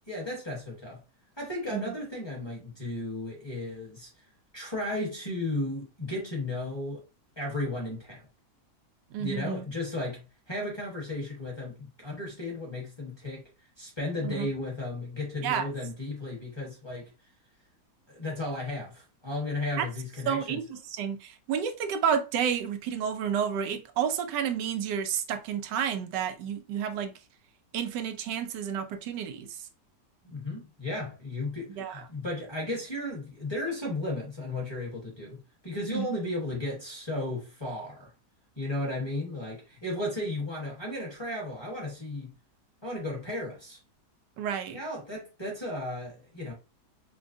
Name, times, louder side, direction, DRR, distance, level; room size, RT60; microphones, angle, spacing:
voice 1, 0.1-1.0 1.4-4.1 4.5-7.0 7.4-8.2 9.2-13.4 13.8-17.0 18.1-20.6 30.2-38.1 38.6-42.3 42.8-43.8 44.7-46.5, left 2 dB, 20° left, 1.0 m, -34 dB
voice 2, 9.1-9.7 14.2-14.5 15.4-15.7 19.8-19.9 20.3-27.1 27.7-29.5 31.8-32.0 35.9-36.1 44.4-44.8, right 8 dB, 85° right, 1.2 m, -30 dB
5.2 x 2.2 x 2.6 m
omnidirectional pair, 1.8 m